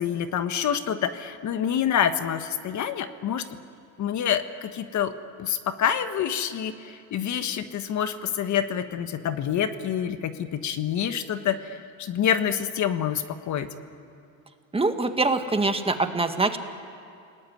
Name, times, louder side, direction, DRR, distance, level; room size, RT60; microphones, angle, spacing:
voice 1, 0.0-3.4 4.0-5.1 5.4-13.7, left 9 dB, 50° left, 9 dB, 1.5 m, -27 dB
voice 2, 14.7-16.6, right 3 dB, 15° right, 7 dB, 1.9 m, -24 dB
29.0 x 19.5 x 9.5 m, 2.5 s
supercardioid pair, 100°, 37 cm